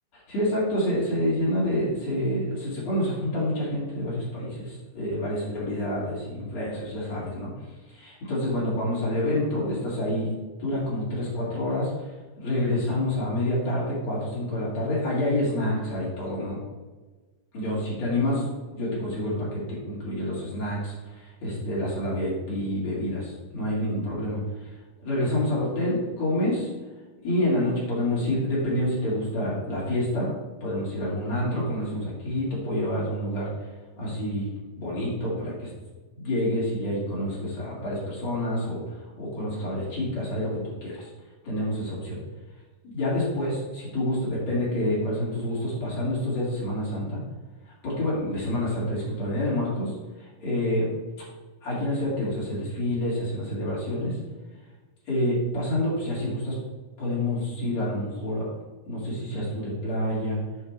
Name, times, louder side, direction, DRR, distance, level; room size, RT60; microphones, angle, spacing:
voice 1, 0.3-7.5 7.9-10.3 10.6-12.1 12.4-16.6 17.5-18.4 18.8-19.6 19.8-26.7 27.2-30.3 30.6-33.5 34.0-34.5 34.8-35.7 36.1-38.8 39.2-40.5 40.8-41.1 41.4-42.2 42.9-47.2 47.8-50.0 50.4-50.9 51.6-54.2 55.1-56.5 57.0-58.4 58.9-60.4, left 1 dB, 40° left, -7 dB, 3.3 m, -28 dB
8.1 x 5.6 x 4.6 m, 1.2 s
omnidirectional pair, 5.3 m